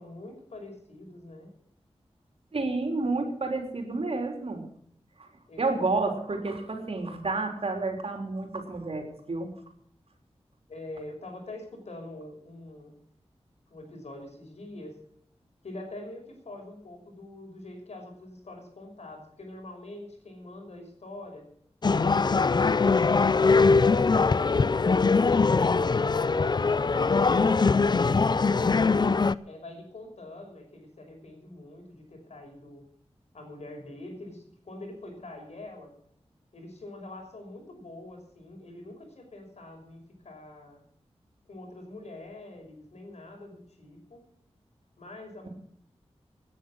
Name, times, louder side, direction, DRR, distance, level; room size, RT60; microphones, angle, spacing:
voice 1, 0.0-1.5 5.5-5.6 10.7-13.0 13.7-14.9 15.6-21.5 29.4-32.8 33.3-35.9 36.5-40.8 41.5-44.3 45.0-45.5, left 2 dB, 85° left, 3 dB, 5.9 m, -44 dB
voice 2, 2.5-4.6 5.2-5.3 5.6-9.5, right 3 dB, 60° right, 3 dB, 3.9 m, -30 dB
sound 1, 21.8-29.4, left 4 dB, 40° left, 0.5 m, -22 dB
18.5 x 10.0 x 6.4 m, 0.66 s
wide cardioid pair, 105°, 11 cm